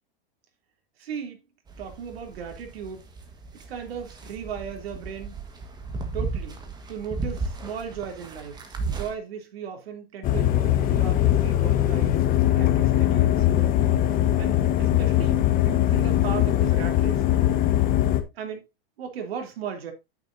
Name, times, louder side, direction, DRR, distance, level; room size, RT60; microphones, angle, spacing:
voice 1, 1.0-1.4 1.8-3.0 3.5-5.4 6.1-6.6 6.9-12.2 12.6-13.8 14.4-17.6 18.3-18.7 19.0-19.9, right 7 dB, 85° right, 3.4 m, -37 dB
sound 1, 1.7-9.1, right 3 dB, 15° right, 1.6 m, -35 dB
sound 2, 10.2-18.2, left 12 dB, 30° left, 1.3 m, -21 dB
9.8 x 9.0 x 2.8 m
supercardioid pair, 150°, 30 cm